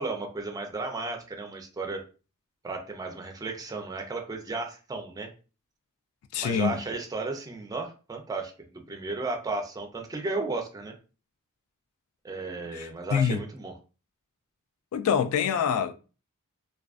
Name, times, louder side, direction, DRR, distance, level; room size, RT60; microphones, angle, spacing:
voice 1, 0.0-2.0 2.6-5.3 6.4-10.9 12.2-13.7, right 3 dB, 15° right, 0.4 m, -34 dB
voice 2, 6.3-6.8 12.7-13.4 14.9-15.9, left 7 dB, 70° left, 0.3 m, -26 dB
2.3 x 2.3 x 2.4 m
head